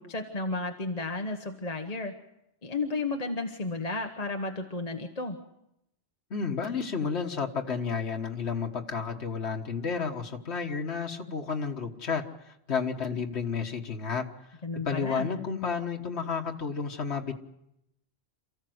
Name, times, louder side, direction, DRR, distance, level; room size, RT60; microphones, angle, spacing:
voice 1, 0.0-2.1 2.6-5.4 14.6-15.3, left 3 dB, 35° left, 4 dB, 1.3 m, -33 dB
voice 2, 6.3-14.3 14.8-17.3, left 5 dB, 80° left, 3 dB, 1.8 m, -31 dB
28.0 x 15.0 x 7.9 m, 0.84 s
omnidirectional pair, 1.1 m